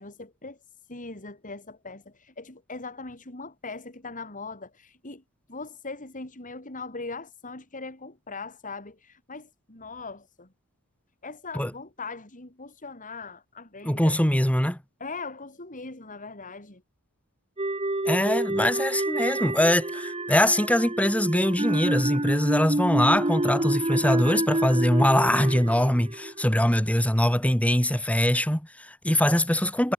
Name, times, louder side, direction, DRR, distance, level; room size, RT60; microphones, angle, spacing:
voice 1, 0.0-5.2 5.5-10.5 11.2-14.2 15.0-16.8, left 3 dB, 35° left, 4.5 m, -40 dB
voice 2, 13.8-14.8 18.1-29.9, left 1 dB, 5° left, 2.1 m, -23 dB
sound 1, 17.6-26.8, right 1 dB, 25° right, 2.1 m, -28 dB
head